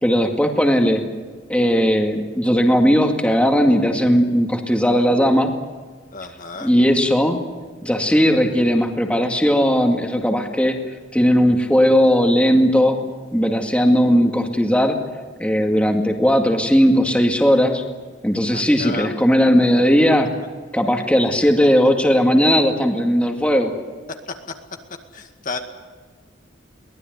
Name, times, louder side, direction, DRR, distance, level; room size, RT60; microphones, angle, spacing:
voice 1, 0.0-1.0 1.5-5.5 6.6-7.4 7.8-10.8 11.1-15.0 15.4-17.8 18.2-20.3 20.7-23.7, equal, 5° left, 3 dB, 2.2 m, -17 dB
voice 2, 6.1-6.7 18.5-19.2 20.9-21.0 24.1-24.3 25.1-25.6, left 3 dB, 45° left, 5 dB, 2.0 m, -32 dB
23.0 x 19.0 x 9.4 m, 1.4 s
head